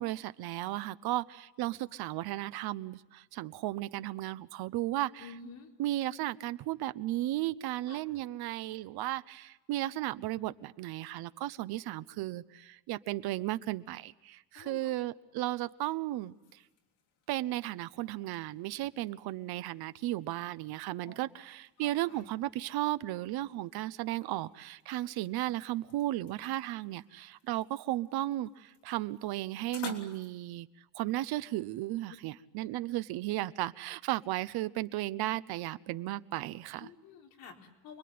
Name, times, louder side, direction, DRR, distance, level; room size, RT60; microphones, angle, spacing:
voice 1, 0.0-5.3 5.8-16.3 17.3-30.7 30.9-36.9, right 15 dB, 70° right, 15 dB, 0.9 m, -35 dB
voice 2, 5.2-5.7 7.9-8.0 14.5-14.9 21.0-21.2 21.8-22.2 36.8-38.0, left 5 dB, 65° left, 0 dB, 4.5 m, -50 dB
sound 1, 15.5-30.3, left 7 dB, 90° left, 3.5 m, -54 dB
28.5 x 21.5 x 9.5 m, 1.0 s
cardioid pair, 180°, 39 cm